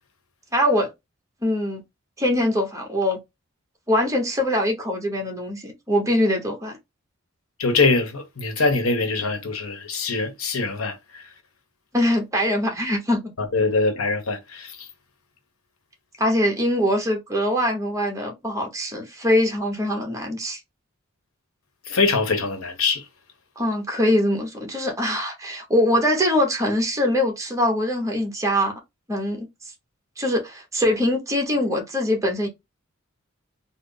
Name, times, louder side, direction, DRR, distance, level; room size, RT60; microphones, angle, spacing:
voice 1, 0.5-0.9 1.4-1.8 2.2-3.2 3.9-6.8 11.9-13.3 16.2-20.6 23.6-28.7 29.1-29.5 30.2-32.5, left 1 dB, 15° right, 0.9 m, -23 dB
voice 2, 7.6-10.9 13.5-14.7 21.9-23.0, left 3 dB, 85° left, 1.0 m, -23 dB
3.8 x 2.0 x 3.9 m
head